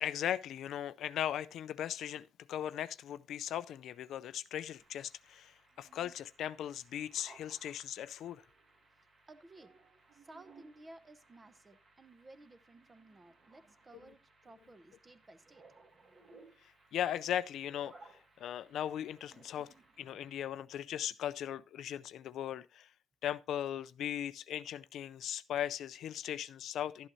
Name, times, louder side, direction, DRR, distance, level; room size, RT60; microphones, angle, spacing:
voice 1, 0.0-8.4 16.9-17.9 18.4-19.7 20.0-22.9 23.2-27.1, left 10 dB, 70° left, 0.4 m, -38 dB
Strange but cool sound.., 4.8-20.4, right 3 dB, 35° right, 1.8 m, -62 dB
voice 2, 9.3-15.7 19.8-20.2, right 2 dB, 20° right, 0.8 m, -57 dB
12.5 x 11.0 x 2.7 m
cardioid pair, 165°, 0 cm